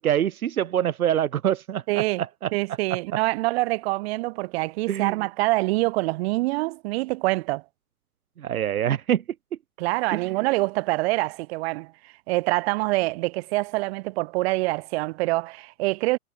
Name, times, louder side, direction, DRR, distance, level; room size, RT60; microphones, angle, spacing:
voice 1, 0.0-2.0 2.4-2.5 4.9-5.2 8.4-9.2 10.1-10.2, right 10 dB, 70° right, 2.2 m, -24 dB
voice 2, 1.9-2.2 2.5-7.6 9.8-16.2, right 22 dB, 40° right, 6.6 m, -25 dB
hypercardioid pair, 140°, 46 cm